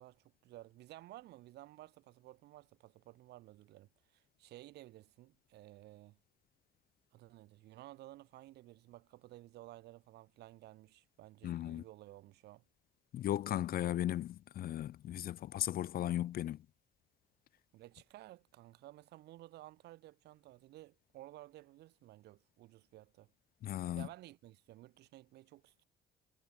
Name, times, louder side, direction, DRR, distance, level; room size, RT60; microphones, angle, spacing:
voice 1, 0.0-6.2 7.1-12.6 17.7-23.3 24.0-25.8, right 16 dB, 80° right, 6.9 m, -55 dB
voice 2, 11.4-11.8 13.1-16.6 23.6-24.1, left 12 dB, 60° left, 1.6 m, -36 dB
cardioid pair, 110°, 17 cm